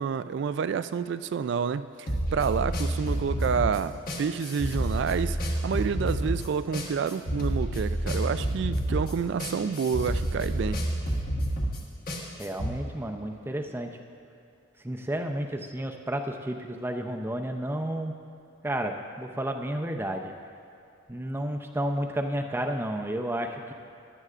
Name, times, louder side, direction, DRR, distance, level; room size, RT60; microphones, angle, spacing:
voice 1, 0.0-5.4 5.6-10.8, right 6 dB, 60° right, 13 dB, 0.3 m, -29 dB
sound 1, 2.1-12.7, right 1 dB, 45° left, 1.3 m, -29 dB
voice 2, 12.4-13.9 14.8-18.1 18.6-20.3 21.1-23.7, right 1 dB, 10° right, 4 dB, 0.5 m, -31 dB
15.5 x 11.0 x 2.5 m, 2.7 s
head